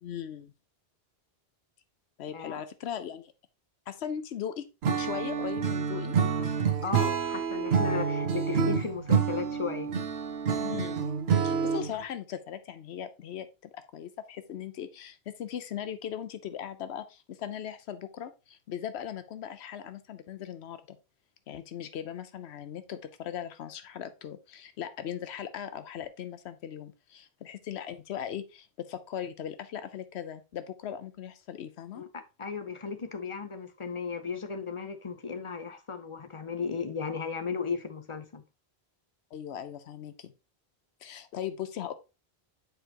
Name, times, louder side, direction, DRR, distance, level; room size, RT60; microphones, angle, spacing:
voice 1, 0.0-0.5 2.2-3.3 3.9-4.7 5.0-6.2 10.6-11.0 11.4-21.0 21.5-32.0 39.3-40.3 41.0-41.9, left 9 dB, 85° left, 0.9 m, -39 dB
Acoustic guitar / Strum, 4.8-12.0, right 6 dB, 80° right, 1.1 m, -28 dB
voice 2, 6.8-9.9 31.9-38.4, left 5 dB, 35° left, 0.6 m, -35 dB
7.8 x 4.6 x 2.9 m
omnidirectional pair, 1.1 m